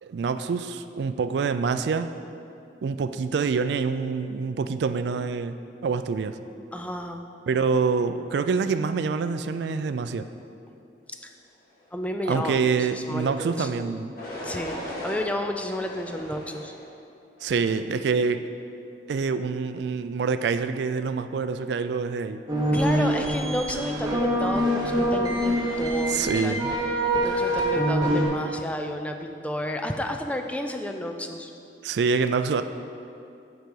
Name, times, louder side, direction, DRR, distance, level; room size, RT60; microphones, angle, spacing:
voice 1, 0.0-2.1 2.8-5.6 5.8-6.4 7.5-10.3 12.3-14.1 17.4-18.4 19.1-22.4 26.1-26.7 31.8-32.6, right 5 dB, 65° right, 10 dB, 0.3 m, -26 dB
voice 2, 6.7-7.2 11.2-11.3 11.9-14.0 14.4-16.7 22.7-26.5 27.2-31.5, left 1 dB, 5° left, 4 dB, 0.4 m, -31 dB
sound 1, 13.2-13.6 14.1-15.2 15.8-16.8 17.4-17.8, equal, 50° left, 1.6 m, -38 dB
sound 2, 22.5-28.2, equal, 20° right, 1.0 m, -25 dB
6.6 x 4.8 x 6.3 m, 2.5 s
head